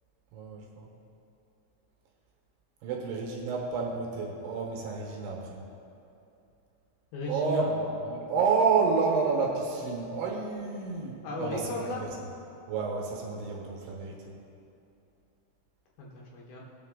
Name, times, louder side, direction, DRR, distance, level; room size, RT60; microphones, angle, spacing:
voice 1, 0.3-0.9 2.8-5.6 7.3-11.7 12.7-14.2, right 4 dB, 75° right, -1 dB, 3.1 m, -29 dB
voice 2, 7.1-7.7 11.2-12.0 16.0-16.6, left 2 dB, 70° left, -3 dB, 2.7 m, -35 dB
18.0 x 6.4 x 3.8 m, 2.7 s
omnidirectional pair, 5.1 m